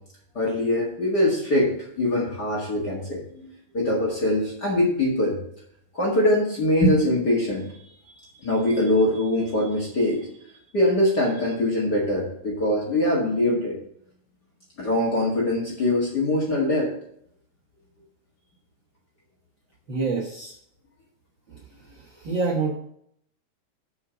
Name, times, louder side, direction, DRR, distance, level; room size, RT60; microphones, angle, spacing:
voice 1, 0.3-5.4 5.9-7.7 8.4-10.3 10.7-13.8 14.8-16.9, left 1 dB, 40° left, -3 dB, 1.8 m, -23 dB
voice 2, 19.9-20.5 22.0-22.7, right 4 dB, 50° right, -3 dB, 1.5 m, -27 dB
6.8 x 5.7 x 6.6 m, 0.69 s
omnidirectional pair, 3.8 m